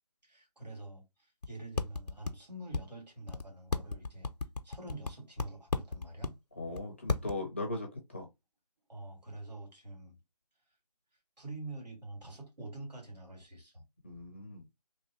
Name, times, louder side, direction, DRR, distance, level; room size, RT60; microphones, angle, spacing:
voice 1, 0.2-4.3 4.6-6.4 8.9-10.2 11.4-13.8, right 2 dB, 90° right, 2.6 m, -46 dB
sound 1, 1.4-1.5 1.8-2.3 2.7-2.8 3.3-3.4 3.7-5.1 5.4-6.3 6.8-6.9 7.1-7.3, left 4 dB, 80° left, 0.7 m, -32 dB
voice 2, 6.6-8.3 14.0-14.6, left 2 dB, 20° left, 0.6 m, -38 dB
3.5 x 2.8 x 3.0 m
figure-of-eight pair, 165°, 21 cm